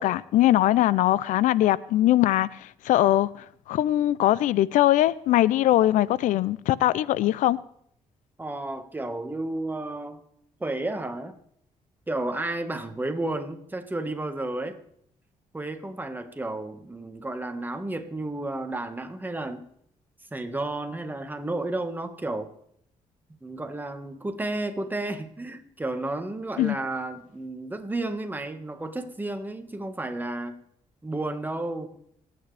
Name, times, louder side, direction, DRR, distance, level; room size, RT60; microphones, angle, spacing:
voice 1, 0.0-3.3 3.7-7.6 26.6-26.8, left 14 dB, 85° left, 0.4 m, -21 dB
voice 2, 8.4-10.2 10.6-11.3 12.1-14.8 15.5-19.7 20.3-22.5 23.4-30.6 31.0-31.9, right 2 dB, 15° right, 1.5 m, -32 dB
27.0 x 9.3 x 3.4 m
cardioid pair, 90°, 13 cm